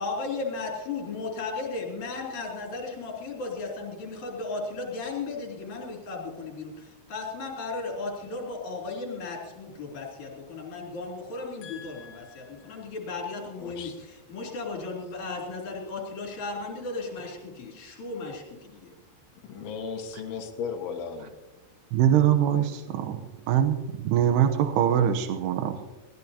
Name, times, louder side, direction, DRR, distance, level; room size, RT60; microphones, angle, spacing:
voice 1, 0.0-13.9 14.3-18.3 18.7-18.9, left 3 dB, 45° left, -1 dB, 4.3 m, -35 dB
voice 2, 11.6-12.8 13.6-14.0 19.4-21.3, left 6 dB, 70° left, 3 dB, 1.6 m, -37 dB
voice 3, 21.9-23.2 23.5-23.8 24.0-25.9, right 10 dB, 75° right, 6 dB, 2.8 m, -23 dB
21.5 x 16.5 x 2.8 m, 1.2 s
omnidirectional pair, 5.1 m